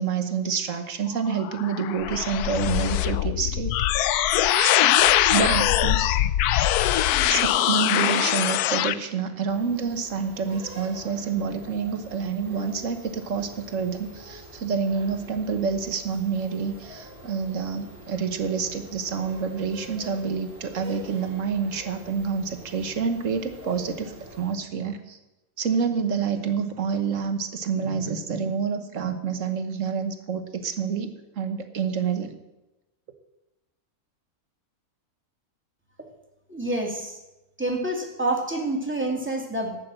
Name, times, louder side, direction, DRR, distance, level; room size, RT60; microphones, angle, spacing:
voice 1, 0.0-3.7 4.5-6.2 7.3-25.2 25.6-32.4, right 6 dB, 55° right, 8 dB, 1.5 m, -28 dB
sound 1, 1.3-8.9, left 12 dB, 80° left, 1.1 m, -22 dB
sound 2, 9.5-24.6, right 1 dB, 40° right, 2.3 m, -45 dB
voice 2, 36.5-37.2 37.6-39.8, right 2 dB, 5° right, 0 dB, 2.5 m, -27 dB
12.0 x 8.6 x 7.7 m, 1.0 s
omnidirectional pair, 1.6 m